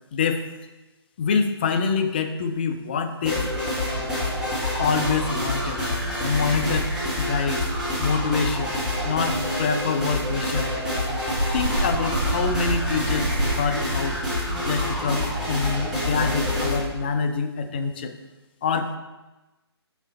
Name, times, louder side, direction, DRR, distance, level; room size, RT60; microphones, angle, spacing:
voice 1, 0.1-0.4 1.2-3.4 4.8-5.9 6.2-7.7 8.0-8.8 9.0-10.7 11.5-14.2 14.6-18.1 18.6-19.0, left 5 dB, 20° left, 7 dB, 0.4 m, -26 dB
sound 1, 3.2-16.8, left 1 dB, 5° right, 1.2 m, -27 dB
sound 2, 6.6-14.2, right 3 dB, 65° right, 0.6 m, -32 dB
6.4 x 5.1 x 3.9 m, 1.1 s
figure-of-eight pair, 140°, 14 cm